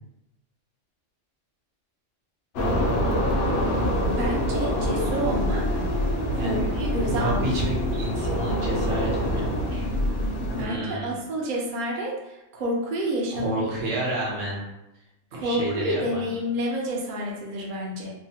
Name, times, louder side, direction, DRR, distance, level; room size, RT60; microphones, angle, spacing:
sound 1, 2.5-10.6, equal, 65° left, 0.7 m, -25 dB
voice 1, 4.1-5.7 6.3-7.6 10.6-13.6 15.3-18.1, equal, 55° right, -2 dB, 0.6 m, -29 dB
voice 2, 6.3-6.7 7.0-9.9 10.5-11.1 13.3-14.6 15.3-16.2, right 1 dB, 70° right, -4 dB, 1.2 m, -30 dB
3.0 x 2.0 x 2.7 m, 0.92 s
omnidirectional pair, 1.3 m